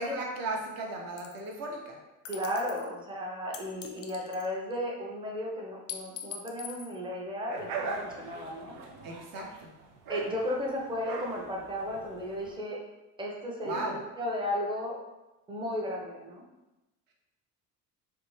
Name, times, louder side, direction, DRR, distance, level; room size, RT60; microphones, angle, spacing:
voice 1, 0.0-2.0 9.0-9.5 13.6-14.0, right 2 dB, 45° right, 0 dB, 0.8 m, -35 dB
sound 1, 1.2-1.5 2.2-2.9 3.5-4.8 5.9-6.9, left 8 dB, 35° left, 0.4 m, -42 dB
voice 2, 2.3-8.7 9.3-9.5 10.1-12.8 13.2-14.9 15.5-16.4, left 1 dB, 10° right, -2 dB, 0.6 m, -34 dB
sound 2, 7.5-12.5, right 4 dB, 70° right, 0.6 m, -40 dB
2.7 x 2.2 x 3.1 m, 1.0 s
hypercardioid pair, 65°, 47 cm